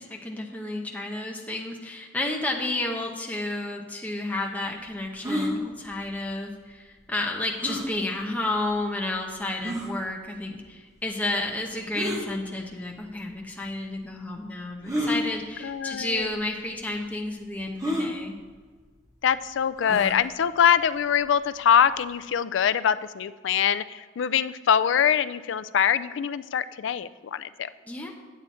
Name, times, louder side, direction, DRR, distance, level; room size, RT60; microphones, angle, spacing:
voice 1, 0.0-18.4 27.9-28.1, left 2 dB, 10° left, 0 dB, 0.9 m, -31 dB
sound 1, 5.2-5.5 7.6-7.9 8.7-8.8 9.6-9.9 11.9-12.2 13.3-13.4 14.8-15.2 16.1-16.2 16.5-16.6 17.8-18.1 19.8-20.2, equal, 15° right, 1.4 m, -29 dB
voice 2, 15.6-16.3 19.2-27.7, left 8 dB, 75° left, 14 dB, 0.3 m, -23 dB
8.9 x 8.4 x 4.3 m, 1.4 s
head